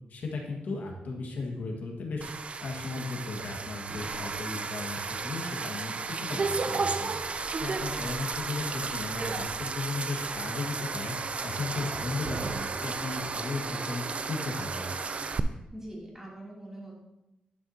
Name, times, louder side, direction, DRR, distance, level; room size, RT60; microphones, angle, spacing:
voice 1, 0.1-2.3 2.6-11.2 11.4-14.9, left 3 dB, 80° left, 0 dB, 1.6 m, -36 dB
sound 1, 2.2-15.4, right 4 dB, 45° right, 0.4 m, -33 dB
voice 2, 15.4-17.0, right 1 dB, 15° right, -4 dB, 2.8 m, -44 dB
11.0 x 6.2 x 2.8 m, 0.94 s
cardioid pair, 85°, 3 cm